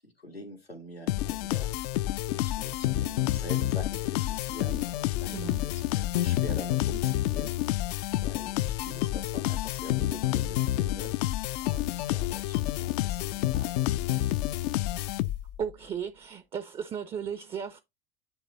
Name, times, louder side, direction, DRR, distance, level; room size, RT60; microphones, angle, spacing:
voice 1, 0.0-1.7 2.3-5.5 5.9-7.6 8.2-11.1 11.6-13.7, left 1 dB, 90° left, 1.5 m, -44 dB
sound 1, 1.1-15.6, left 15 dB, 45° left, 0.5 m, -29 dB
voice 2, 5.3-5.7 15.6-17.8, right 7 dB, 20° right, 0.6 m, -35 dB
8.9 x 3.2 x 4.0 m
figure-of-eight pair, 80°, 29 cm